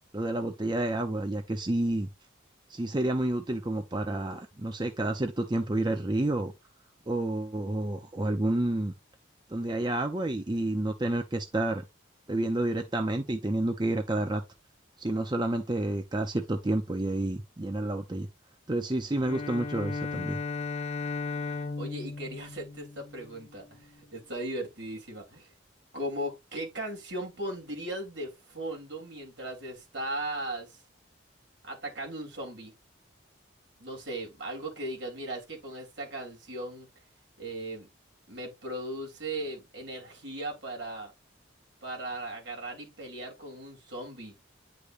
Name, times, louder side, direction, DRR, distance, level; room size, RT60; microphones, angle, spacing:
voice 1, 0.1-2.1 2.7-6.5 7.1-8.9 9.5-11.8 12.3-14.4 15.0-18.3 18.7-20.4, right 1 dB, 25° right, 0.6 m, -29 dB
Bowed string instrument, 19.1-23.6, left 4 dB, 35° left, 0.5 m, -36 dB
voice 2, 21.8-25.5 25.9-30.8 31.6-32.7 33.8-36.9 37.4-37.9 38.3-41.1 41.8-44.3, right 1 dB, 70° right, 3.3 m, -37 dB
9.7 x 5.0 x 2.5 m
head